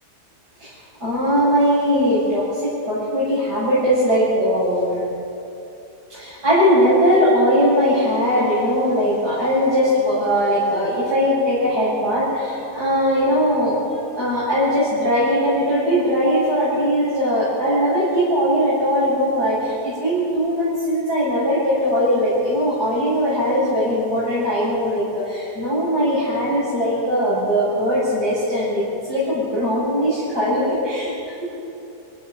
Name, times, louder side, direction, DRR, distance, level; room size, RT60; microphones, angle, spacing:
voice 1, 1.0-5.1 6.1-13.8 14.1-31.5, equal, 70° right, -9 dB, 8.3 m, -20 dB
27.5 x 17.0 x 7.7 m, 2.8 s
omnidirectional pair, 1.8 m